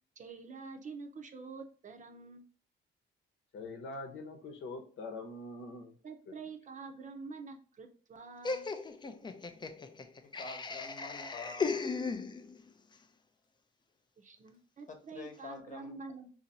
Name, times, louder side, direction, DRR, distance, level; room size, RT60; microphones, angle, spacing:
voice 1, 0.2-2.4 6.0-8.7 14.2-16.3, right 4 dB, 40° right, 5 dB, 0.7 m, -47 dB
voice 2, 3.5-5.9, left 2 dB, 70° left, 3 dB, 0.9 m, -43 dB
Laughter, 8.4-12.7, left 4 dB, 25° left, 0.4 m, -37 dB
voice 3, 10.4-11.8 14.9-16.0, left 3 dB, 40° left, 4 dB, 1.0 m, -47 dB
2.8 x 2.8 x 4.0 m, 0.42 s
cardioid pair, 90°, 20 cm